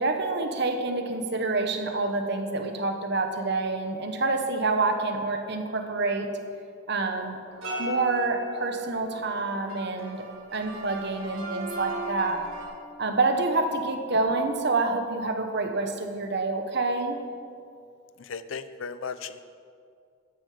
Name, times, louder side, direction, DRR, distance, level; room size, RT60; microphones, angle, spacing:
voice 1, 0.0-6.3 6.9-7.4 7.8-10.2 10.5-12.4 13.0-17.2, right 3 dB, 55° right, 5 dB, 1.3 m, -27 dB
sound 1, 7.5-12.6, equal, 90° right, 3.8 m, -37 dB
voice 2, 18.3-19.4, left 5 dB, 75° left, 13 dB, 0.6 m, -35 dB
14.0 x 10.5 x 5.1 m, 2.3 s
head